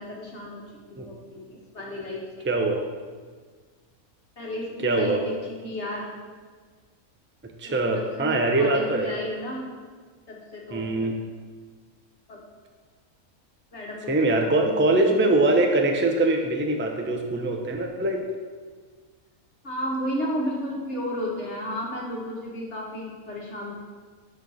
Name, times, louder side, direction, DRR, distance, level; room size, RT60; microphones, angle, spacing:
voice 1, 0.0-1.5 1.7-2.5 4.4-6.1 7.7-9.7 10.3-11.1 12.3-12.4 13.7-14.1 14.4-15.0 19.6-23.7, left 1 dB, 50° left, -2 dB, 1.8 m, -33 dB
voice 2, 2.5-2.8 4.8-5.2 7.6-9.1 10.7-11.2 14.1-18.2, right 2 dB, 10° right, 3 dB, 0.6 m, -23 dB
11.0 x 4.5 x 7.0 m, 1.5 s
omnidirectional pair, 1.5 m